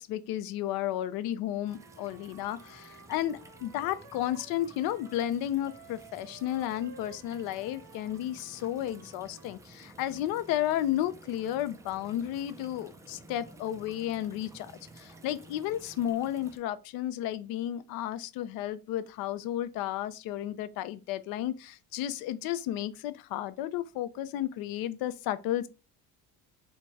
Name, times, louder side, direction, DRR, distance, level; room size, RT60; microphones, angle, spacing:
voice 1, 0.0-25.7, left 12 dB, 75° left, 0.6 m, -33 dB
Wind instrument woodwind instrument, 1.5-5.3 5.6-9.6, right 4 dB, 65° right, 1.3 m, -54 dB
sound 1, 1.7-16.6, right 2 dB, 10° right, 0.3 m, -53 dB
4.5 x 2.2 x 4.1 m
cardioid pair, 140°, 36 cm